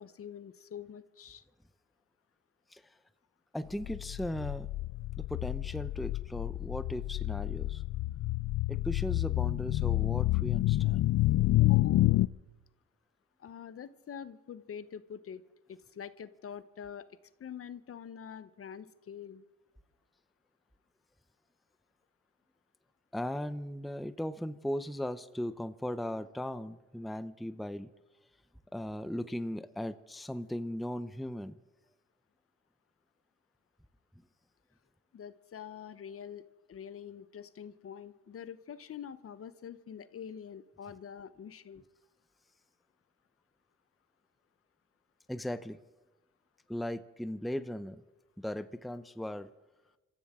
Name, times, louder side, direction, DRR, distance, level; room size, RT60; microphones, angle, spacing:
voice 1, 0.0-1.4 11.6-12.1 13.4-15.4 15.7-19.4 35.1-41.8, left 8 dB, 50° left, 14 dB, 0.9 m, -45 dB
voice 2, 3.5-4.7 5.3-7.8 8.7-11.1 23.1-27.9 28.7-31.6 45.3-45.8 46.7-48.0 48.4-49.5, left 1 dB, ahead, 12 dB, 0.6 m, -37 dB
sound 1, 3.8-12.3, left 17 dB, 65° left, 0.5 m, -29 dB
27.0 x 14.5 x 3.7 m, 1.1 s
cardioid pair, 90°, 30 cm